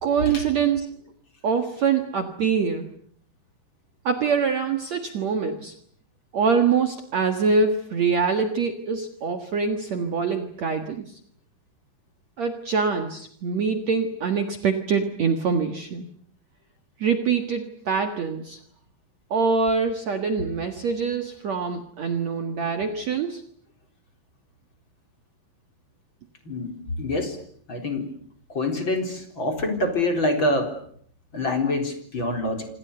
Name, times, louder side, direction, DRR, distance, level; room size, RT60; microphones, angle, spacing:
voice 1, 0.0-0.9 1.4-2.9 4.0-5.7 6.3-11.1 12.4-16.1 17.0-18.6 19.3-23.4, right 5 dB, 85° right, 7 dB, 1.5 m, -24 dB
voice 2, 27.0-27.4 27.7-28.1 28.5-30.7 31.3-32.7, left 2 dB, 25° left, 5 dB, 4.1 m, -25 dB
28.0 x 27.0 x 6.9 m, 0.63 s
omnidirectional pair, 5.9 m